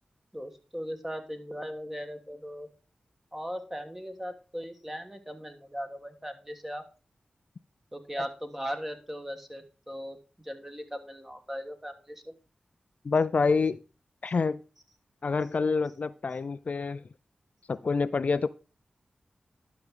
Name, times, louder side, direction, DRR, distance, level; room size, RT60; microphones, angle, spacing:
voice 1, 0.3-2.7 3.3-6.8 7.9-10.2 10.4-12.3, equal, 10° right, 1.6 m, -38 dB
voice 2, 13.0-13.8 14.2-14.6 15.2-17.0 17.7-18.5, left 4 dB, 60° left, 0.4 m, -27 dB
11.0 x 6.0 x 3.7 m
cardioid pair, 50°, 3 cm